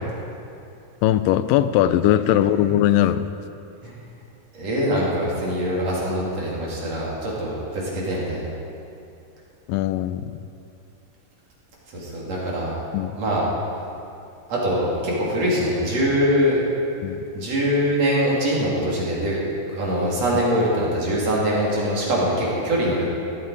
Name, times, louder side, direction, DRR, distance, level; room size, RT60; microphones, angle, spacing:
voice 1, 1.0-3.3 9.7-10.3 12.9-13.2 17.0-17.2, left 12 dB, 85° left, 12 dB, 2.2 m, -20 dB
voice 2, 4.5-8.5 11.9-12.8 13.2-13.5 14.5-16.6 17.3-19.4 19.7-23.1, equal, 50° right, -5 dB, 3.9 m, -23 dB
16.0 x 13.0 x 4.9 m, 2.7 s
omnidirectional pair, 3.8 m